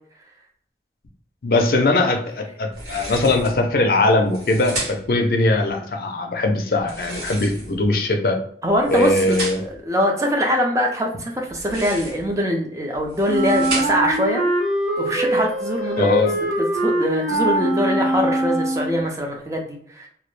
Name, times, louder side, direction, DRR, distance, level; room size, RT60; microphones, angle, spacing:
voice 1, 1.4-8.4 8.9-9.6 16.0-16.3, left 2 dB, 55° left, 4 dB, 0.4 m, -20 dB
sound 1, 2.7-3.6 4.2-5.2 6.8-7.9 8.7-9.8 11.5-12.3 12.9-14.2, right 2 dB, 80° right, 1.2 m, -33 dB
voice 2, 8.6-14.4 15.0-16.1 16.4-20.1, equal, 20° right, 1 dB, 0.4 m, -23 dB
Wind instrument woodwind instrument, 13.3-19.1, right 1 dB, 40° right, 0.9 m, -22 dB
2.2 x 2.0 x 3.0 m, 0.63 s
head